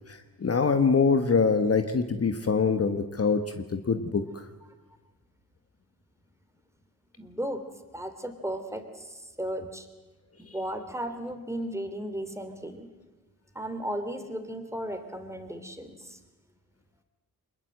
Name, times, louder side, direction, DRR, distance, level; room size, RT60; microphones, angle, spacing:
voice 1, 0.4-4.4, left 5 dB, 40° left, 8 dB, 1.4 m, -24 dB
voice 2, 7.2-7.6 7.9-9.9 10.4-12.9 13.5-16.2, right 1 dB, 10° right, 7 dB, 3.1 m, -35 dB
23.0 x 20.5 x 7.8 m, 1.2 s
cardioid pair, 60°, 36 cm